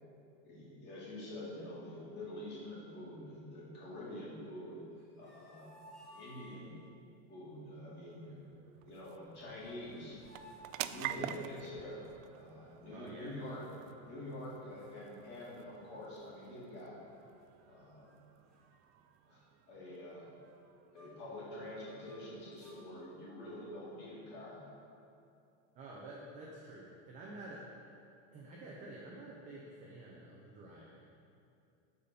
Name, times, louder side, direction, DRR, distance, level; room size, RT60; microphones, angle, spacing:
voice 1, 0.4-4.8 5.2-5.8 6.1-6.8 7.3-8.4 8.7-10.2 10.7-12.1 12.3-13.6 14.0-17.0 17.7-18.1 19.3-19.4 19.7-20.3 20.9-24.7, left 1 dB, 25° left, -6 dB, 2.2 m, -46 dB
sound 1, 4.9-6.9 9.1-9.2 9.5-11.7 13.0-13.9 14.4-14.5 14.8-15.9 16.2-16.5 17.1-17.7 18.0-18.2 18.5-21.4 21.8-22.8, equal, ahead, 1.1 m, -60 dB
sound 2, 7.3-22.2, right 12 dB, 85° right, 0.5 m, -49 dB
voice 2, 12.9-13.4 25.7-27.6 28.3-31.0, right 2 dB, 20° right, -4 dB, 0.6 m, -50 dB
12.5 x 4.2 x 5.1 m, 2.5 s
supercardioid pair, 175°, 39 cm